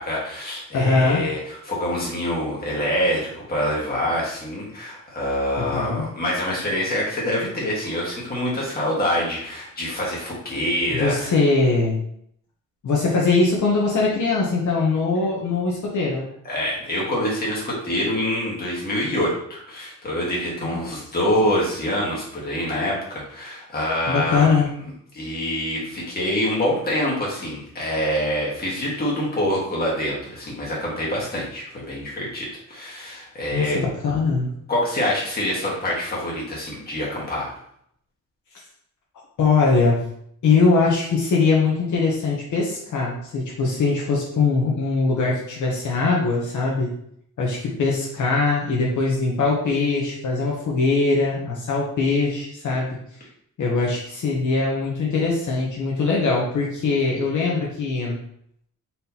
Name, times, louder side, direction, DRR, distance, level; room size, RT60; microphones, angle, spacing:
voice 1, 0.0-11.3 16.4-24.5 24.8-24.9 25.1-33.8 34.7-37.5, equal, 30° left, -5 dB, 1.6 m, -25 dB
voice 2, 0.7-1.2 5.6-6.1 10.9-12.0 12.8-16.2 20.6-20.8 24.1-24.7 33.5-34.5 39.4-40.0 40.4-46.9 47.4-53.0 53.6-58.2, left 4 dB, 65° left, -3 dB, 1.0 m, -21 dB
4.3 x 3.5 x 2.8 m, 0.70 s
cardioid pair, 130°, 33 cm